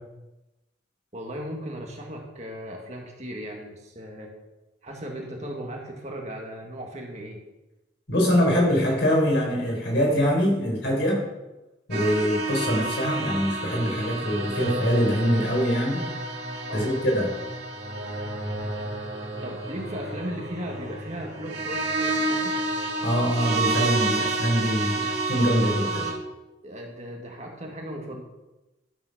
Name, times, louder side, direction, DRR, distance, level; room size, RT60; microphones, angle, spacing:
voice 1, 1.1-4.3 4.8-7.4 16.7-16.9 19.4-22.6 26.6-28.2, equal, 35° right, 0 dB, 1.9 m, -37 dB
voice 2, 8.1-11.2 11.9-16.0 16.7-17.3 23.0-26.1, equal, 60° left, -1 dB, 4.4 m, -23 dB
sound 1, 11.9-26.1, right 2 dB, 55° right, 2.9 m, -30 dB
12.0 x 7.3 x 6.0 m, 1.0 s
head